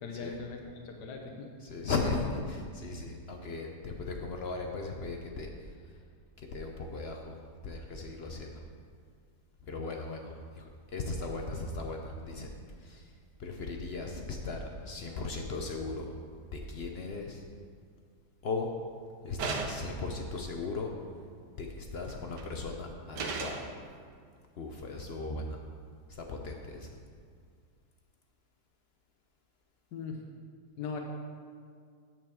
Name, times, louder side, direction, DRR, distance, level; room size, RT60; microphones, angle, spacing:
voice 1, 0.0-1.5 29.9-30.2 30.8-31.0, left 5 dB, 85° left, 2 dB, 1.4 m, -39 dB
voice 2, 1.6-5.7 6.4-8.6 9.6-12.5 12.8-13.1 13.4-16.1 16.5-17.4 18.4-18.7 19.2-20.9 21.5-23.7 24.6-25.6 26.1-26.9, left 3 dB, 60° left, 2 dB, 0.6 m, -37 dB
sound 1, 19.4-20.0 22.1-22.4 23.1-23.7, right 4 dB, 85° right, 1.4 m, -35 dB
8.9 x 4.7 x 6.9 m, 2.1 s
omnidirectional pair, 1.8 m